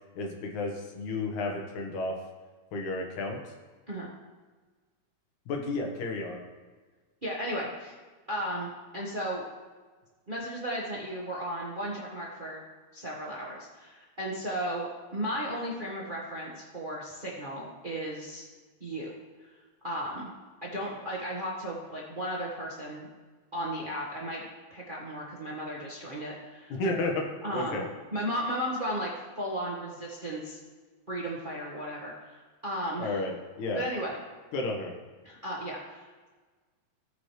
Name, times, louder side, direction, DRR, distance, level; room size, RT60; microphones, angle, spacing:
voice 1, 0.2-2.2 2.7-3.4 5.5-6.4 26.7-27.2 27.5-27.9 33.0-33.8 34.5-34.9, left 2 dB, 85° left, 1 dB, 2.8 m, -32 dB
voice 2, 7.2-7.9 8.3-9.4 10.3-12.6 12.9-18.4 18.8-19.1 19.4-19.5 19.8-20.3 20.6-23.1 23.5-26.8 27.4-27.8 28.1-29.1 29.4-30.6 31.1-33.2 33.7-34.2 35.2-36.3, equal, 30° right, -4 dB, 0.9 m, -35 dB
17.5 x 6.2 x 3.3 m, 1.4 s
omnidirectional pair, 3.3 m